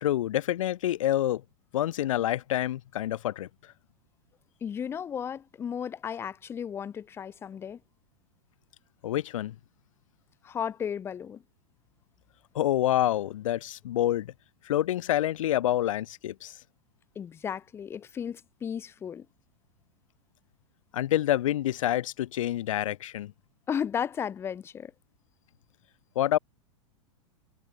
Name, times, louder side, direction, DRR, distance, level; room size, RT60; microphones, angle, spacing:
voice 1, 0.0-1.4 1.7-3.5 9.0-9.5 12.5-14.3 14.7-16.5 20.9-23.3 26.2-26.4, left 13 dB, 85° left, 0.5 m, -27 dB
voice 2, 4.6-7.8 10.4-11.4 17.2-19.3 23.7-24.9, left 8 dB, 15° left, 0.4 m, -34 dB
hypercardioid pair, 125°, 16 cm